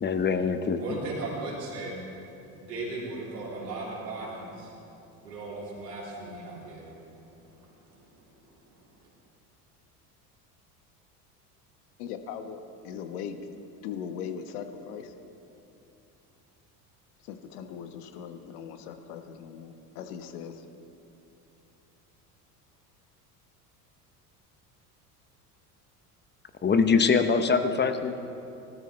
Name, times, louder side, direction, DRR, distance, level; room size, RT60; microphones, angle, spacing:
voice 1, 0.0-1.0 26.6-28.2, left 5 dB, 20° left, 9 dB, 0.9 m, -24 dB
voice 2, 0.7-2.0 2.6-4.7 5.2-6.9 7.9-8.1 8.6-8.7, right 2 dB, 85° right, -6 dB, 3.6 m, -37 dB
voice 3, 12.0-13.4 13.8-15.1 17.3-20.5, left 8 dB, 70° left, 7 dB, 1.3 m, -39 dB
19.0 x 13.0 x 3.3 m, 2.8 s
hypercardioid pair, 75°, 47 cm